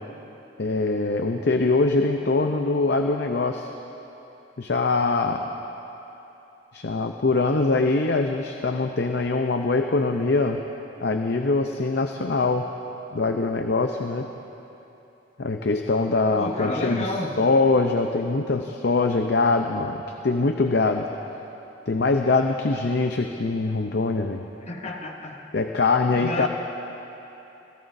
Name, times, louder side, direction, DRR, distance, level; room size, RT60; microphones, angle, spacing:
voice 1, 0.6-3.7 4.6-5.5 6.7-10.6 11.0-12.7 13.1-14.3 15.4-21.1 21.9-24.5 25.5-26.5, left 3 dB, 65° left, 4 dB, 0.6 m, -23 dB
voice 2, 16.4-17.4 24.7-25.6 26.2-26.5, left 2 dB, 35° left, 2 dB, 1.0 m, -31 dB
28.0 x 17.0 x 2.7 m, 3.0 s
head